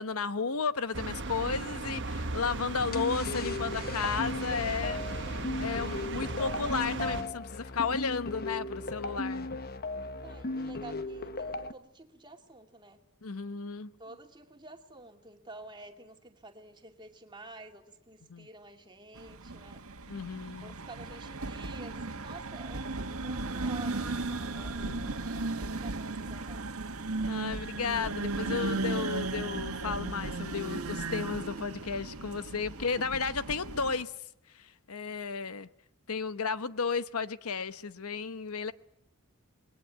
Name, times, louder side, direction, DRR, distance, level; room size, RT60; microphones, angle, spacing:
voice 1, 0.0-5.0 5.6-9.5 13.2-13.9 18.3-18.5 20.1-20.7 24.8-25.1 27.3-34.1 34.5-35.7 36.1-38.7, left 5 dB, 80° left, 1.0 m, -33 dB
sound 1, 0.9-7.2, right 3 dB, 55° right, 1.3 m, -37 dB
sound 2, 2.9-11.7, left 2 dB, 45° left, 1.1 m, -36 dB
voice 2, 10.1-13.0 14.0-20.2 20.6-26.7 32.6-33.1, right 2 dB, 20° right, 2.4 m, -51 dB
sound 3, 19.1-34.0, right 3 dB, 80° right, 1.8 m, -36 dB
27.5 x 21.5 x 9.5 m
head